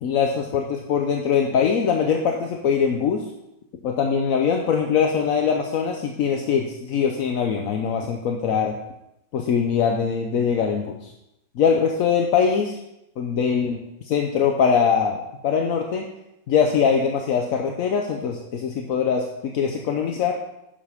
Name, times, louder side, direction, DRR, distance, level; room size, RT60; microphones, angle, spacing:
voice 1, 0.0-3.2 3.8-8.7 9.3-11.1 11.6-12.8 13.2-16.1 16.5-20.4, left 6 dB, 60° left, 2 dB, 0.9 m, -22 dB
10.0 x 7.2 x 3.5 m, 0.87 s
omnidirectional pair, 2.1 m